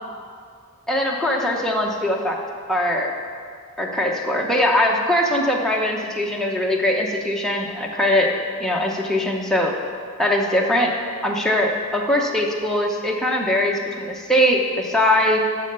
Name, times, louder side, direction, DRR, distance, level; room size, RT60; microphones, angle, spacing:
voice 1, 0.9-2.4 2.7-3.1 3.8-8.3 8.6-9.8 10.2-10.9 11.2-15.4, left 1 dB, ahead, -2 dB, 1.0 m, -21 dB
12.0 x 4.3 x 6.8 m, 2.1 s
head